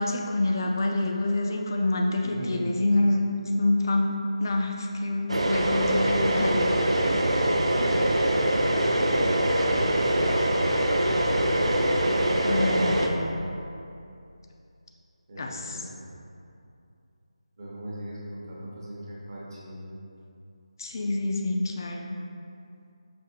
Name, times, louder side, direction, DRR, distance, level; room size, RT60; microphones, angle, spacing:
voice 1, 0.0-6.7 12.4-13.2 15.4-15.8 20.8-22.1, left 2 dB, 40° left, 2 dB, 0.3 m, -27 dB
voice 2, 2.2-2.7 7.6-8.0 8.8-9.9 15.3-16.1 17.6-19.9, equal, 40° right, -5 dB, 0.8 m, -39 dB
sound 1, 5.3-13.1, right 1 dB, 75° right, 0.4 m, -23 dB
5.1 x 2.6 x 2.8 m, 2.6 s
figure-of-eight pair, 160°, 3 cm